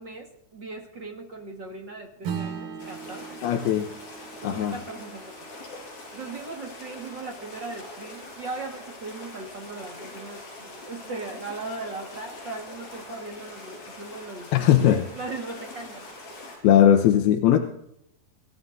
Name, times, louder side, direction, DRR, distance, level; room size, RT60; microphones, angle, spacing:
voice 1, 0.0-3.7 4.4-5.4 6.1-16.1, right 3 dB, 50° right, 1 dB, 1.4 m, -38 dB
Acoustic guitar / Strum, 2.2-7.0, right 7 dB, 75° right, 3.4 m, -39 dB
sound 1, 2.8-16.6, left 2 dB, 65° left, 7.2 m, -43 dB
voice 2, 3.4-3.9 4.4-4.8 14.5-15.1 16.6-17.6, left 10 dB, 90° left, 5 dB, 2.8 m, -19 dB
26.5 x 15.0 x 2.6 m, 0.78 s
omnidirectional pair, 4.5 m